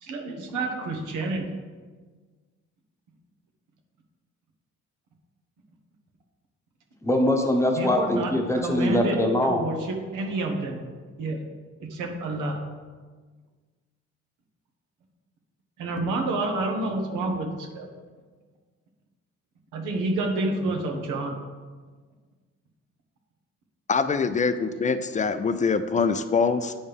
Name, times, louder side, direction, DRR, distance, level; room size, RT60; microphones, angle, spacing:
voice 1, 0.0-1.5 7.7-9.2 9.5-10.8 11.2-11.4 11.8-12.6 15.8-17.9 19.7-21.3, right 2 dB, 85° right, 2 dB, 1.1 m, -29 dB
voice 2, 7.0-9.7, left 1 dB, 10° left, 3 dB, 0.9 m, -23 dB
voice 3, 23.9-26.8, left 5 dB, 25° left, 11 dB, 0.3 m, -24 dB
8.5 x 4.2 x 3.5 m, 1.4 s
cardioid pair, 90°, 30 cm